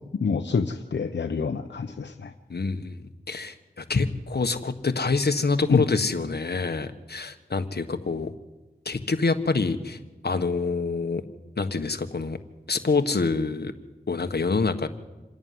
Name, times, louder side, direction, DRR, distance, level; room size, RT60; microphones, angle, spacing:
voice 1, 0.1-2.3 5.7-5.8, left 5 dB, 85° left, 6 dB, 0.9 m, -26 dB
voice 2, 2.5-3.0 3.3-8.3 8.8-10.0 10.2-11.2 11.6-12.4 12.7-13.7 14.1-14.9, left 4 dB, 65° left, 8 dB, 1.5 m, -26 dB
27.0 x 11.0 x 9.6 m, 1.2 s
cardioid pair, 40°, 18 cm